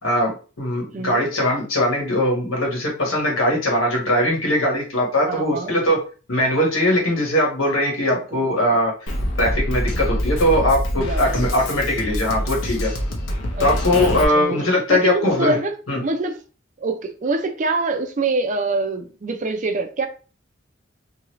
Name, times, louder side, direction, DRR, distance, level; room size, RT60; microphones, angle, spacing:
voice 1, 0.0-6.0 6.3-8.9 9.4-12.9 13.6-15.6 15.9-16.0, left 1 dB, 85° left, 1.3 m, -20 dB
voice 2, 5.3-5.7 8.1-8.4 10.9-11.4 13.5-13.7 14.1-14.6 14.9-16.4 16.8-20.1, right 3 dB, 40° right, 0.4 m, -25 dB
Drum kit, 9.1-14.2, equal, 70° left, 0.6 m, -25 dB
2.8 x 2.6 x 3.0 m
head